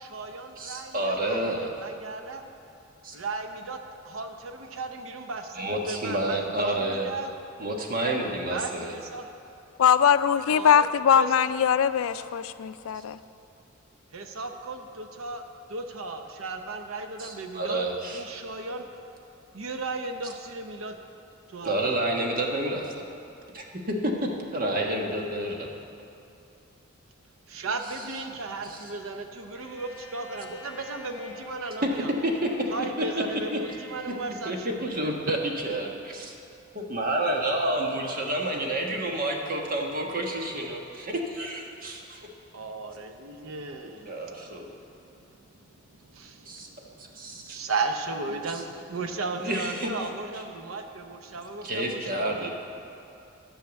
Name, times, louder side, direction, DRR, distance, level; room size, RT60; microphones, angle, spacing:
voice 1, 0.0-2.4 3.1-3.8 4.0-7.3 8.5-9.3 10.5-10.8 11.1-11.5 14.1-15.4 15.7-17.9 18.1-18.9 19.5-21.0 21.5-22.1 27.5-32.1 32.7-35.1 42.5-52.5, right 3 dB, 75° right, 6 dB, 0.7 m, -36 dB
voice 2, 0.6-1.7 3.0-3.2 5.5-7.1 7.6-8.9 12.9-13.0 17.2-18.2 21.6-22.9 23.5-25.7 28.6-28.8 31.8-31.9 32.2-32.5 33.5-33.6 34.1-34.2 34.4-36.3 36.7-42.3 44.1-44.7 46.4-46.7 47.0-47.6 48.5-48.6 49.4-49.9 51.6-52.5, right 1 dB, 45° right, 1 dB, 1.2 m, -29 dB
voice 3, 9.8-13.2, left 8 dB, 75° left, 13 dB, 0.4 m, -21 dB
Bowed string instrument, 29.5-34.2, equal, 15° right, 2.9 m, -46 dB
11.5 x 5.6 x 8.0 m, 2.7 s
head